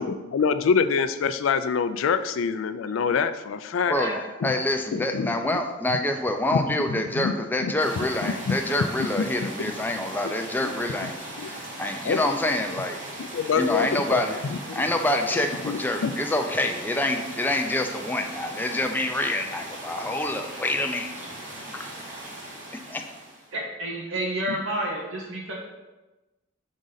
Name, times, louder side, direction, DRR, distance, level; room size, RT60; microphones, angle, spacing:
voice 1, 0.0-4.0 4.4-4.5 4.9-5.3 6.5-7.3 7.6-8.6 9.2-9.7 10.2-11.1 11.4-11.5 12.0-12.2 13.2-14.8 15.6-16.2 24.5-24.6, left 5 dB, 80° left, 12 dB, 0.4 m, -26 dB
voice 2, 3.9-13.0 13.6-14.4 14.7-21.2 21.7-21.9 22.9-23.0, left 1 dB, 10° left, 4 dB, 0.4 m, -27 dB
sound 1, 7.8-23.5, right 1 dB, 40° right, 1.5 m, -39 dB
voice 3, 23.5-25.5, right 1 dB, 90° right, -2 dB, 1.2 m, -30 dB
6.2 x 3.8 x 3.9 m, 1.1 s
head